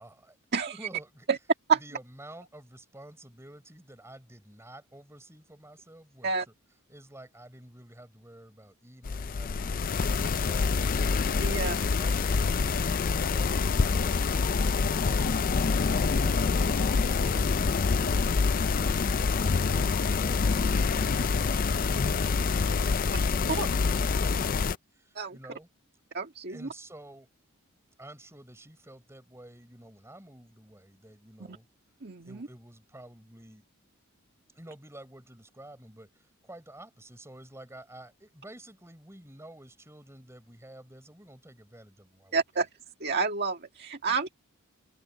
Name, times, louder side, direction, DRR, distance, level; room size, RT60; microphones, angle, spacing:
voice 1, 0.0-0.4 0.7-1.3 1.8-6.3 6.9-25.7 26.5-27.3 28.0-31.7 32.2-33.6 34.5-42.4, right 1 dB, 10° right, 5.5 m, -50 dB
sound 1, 9.1-24.8, left 4 dB, 40° left, 0.4 m, -26 dB
voice 2, 11.4-11.7 23.5-23.7 25.2-25.4 26.1-26.7 31.5-31.6 32.0-32.4 42.3-42.7 43.0-44.3, right 5 dB, 50° right, 1.8 m, -29 dB
head